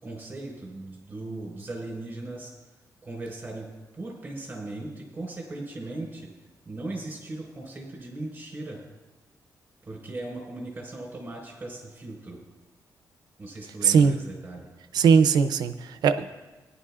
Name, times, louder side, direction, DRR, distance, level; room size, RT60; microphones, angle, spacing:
voice 1, 0.0-2.5 3.0-3.7 3.9-6.3 6.6-8.8 9.8-12.4 13.4-14.7, right 2 dB, 25° right, -2 dB, 4.6 m, -38 dB
voice 2, 13.8-14.2 14.9-16.3, right 6 dB, 90° right, 11 dB, 0.6 m, -20 dB
19.5 x 11.0 x 2.5 m, 1.2 s
cardioid pair, 115°, 7 cm